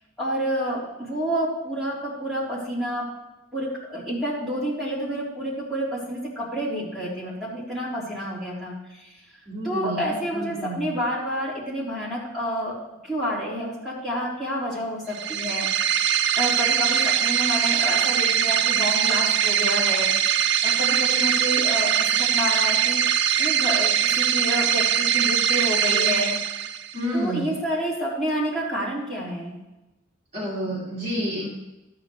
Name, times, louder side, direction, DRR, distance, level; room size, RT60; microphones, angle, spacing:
voice 1, 0.2-3.0 3.5-9.2 9.6-12.8 13.0-15.7 16.2-26.4 27.1-29.6, equal, ahead, -10 dB, 3.7 m, -29 dB
voice 2, 9.5-10.9 26.9-27.4 30.3-31.5, equal, 30° right, -8 dB, 2.3 m, -29 dB
sound 1, 15.1-27.0, right 9 dB, 55° right, 0.5 m, -22 dB
12.5 x 9.1 x 3.3 m, 1.0 s
head